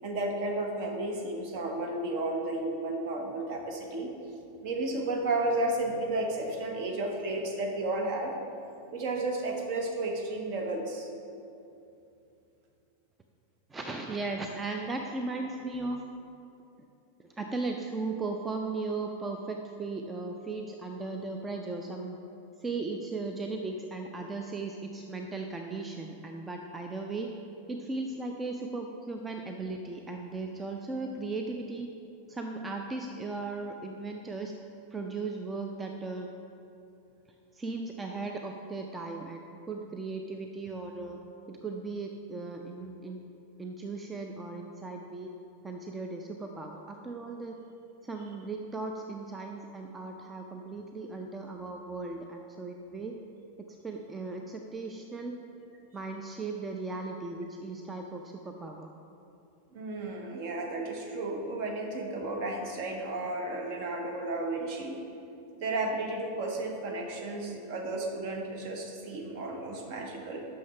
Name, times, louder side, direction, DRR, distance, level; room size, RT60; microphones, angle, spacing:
voice 1, 0.0-4.1 4.6-8.3 8.9-11.1 59.7-64.9 65.6-70.5, right 2 dB, 45° right, 2 dB, 1.1 m, -33 dB
voice 2, 13.7-16.0 17.4-22.2 22.6-27.3 27.7-31.9 32.3-34.5 34.9-36.3 37.5-41.2 41.5-43.2 43.6-45.3 45.6-47.6 48.0-53.2 53.6-55.4 55.9-58.9, right 3 dB, 15° right, 3 dB, 0.5 m, -37 dB
6.3 x 5.8 x 5.6 m, 2.7 s
figure-of-eight pair, 90°, 0 cm